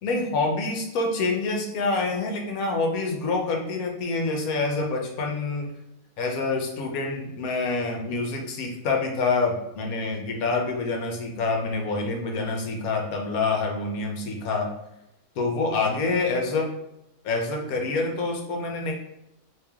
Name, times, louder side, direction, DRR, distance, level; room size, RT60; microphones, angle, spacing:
voice 1, 0.0-5.7 6.2-14.7 15.4-16.7 17.2-18.9, left 3 dB, 75° left, 1 dB, 1.2 m, -26 dB
3.3 x 2.9 x 3.5 m, 0.87 s
omnidirectional pair, 1.6 m